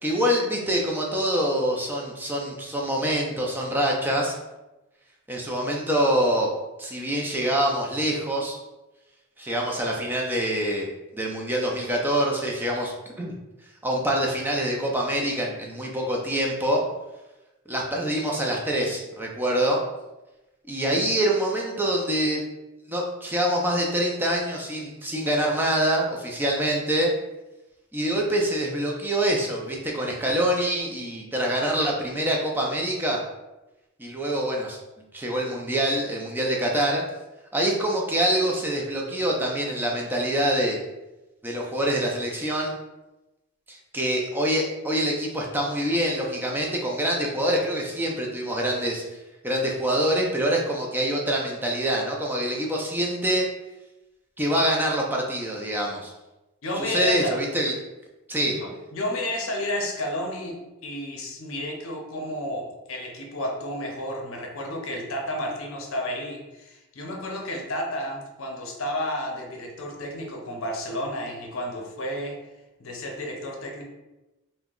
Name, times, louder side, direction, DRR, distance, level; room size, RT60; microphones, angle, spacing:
voice 1, 0.0-4.3 5.3-6.5 6.8-8.6 9.4-10.9 11.1-13.4 13.8-16.8 17.7-19.8 20.7-22.4 22.9-27.1 27.9-33.2 34.0-34.8 35.1-37.0 37.5-40.8 41.4-42.7 43.7-49.2 49.4-53.5 54.4-56.1 56.8-57.7 58.3-58.6, right 1 dB, 10° right, -1 dB, 0.4 m, -25 dB
voice 2, 56.6-57.5 58.4-72.4 72.8-73.8, left 1 dB, 60° left, 0 dB, 0.6 m, -31 dB
2.8 x 2.1 x 3.6 m, 1.0 s
head